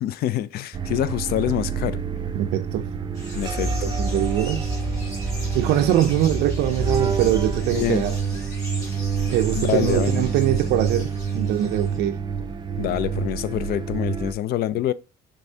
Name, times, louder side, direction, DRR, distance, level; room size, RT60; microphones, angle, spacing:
voice 1, 0.0-2.0 3.3-3.9 7.7-8.0 9.5-10.2 12.8-14.9, left 12 dB, 65° left, 0.4 m, -26 dB
sound 1, 0.7-14.3, right 5 dB, 25° right, 0.5 m, -27 dB
voice 2, 2.3-2.9 3.5-3.7 4.0-4.8 5.5-8.2 9.3-12.2, right 12 dB, 80° right, 0.4 m, -23 dB
sound 2, 3.1-12.0, left 1 dB, 20° left, 2.8 m, -39 dB
5.2 x 3.5 x 2.7 m
cardioid pair, 110°, 17 cm